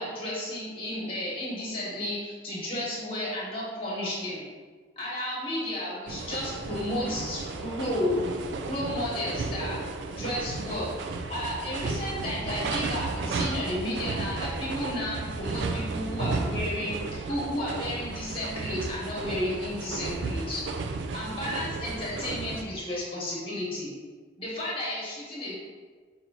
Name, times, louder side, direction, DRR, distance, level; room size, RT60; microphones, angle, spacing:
voice 1, 0.0-4.5 5.0-9.8 10.1-20.6 21.1-23.9 24.4-25.6, left 1 dB, 30° left, -5 dB, 1.1 m, -32 dB
sound 1, 6.1-22.6, right 3 dB, 85° right, 0.3 m, -33 dB
4.8 x 2.7 x 2.8 m, 1.5 s
head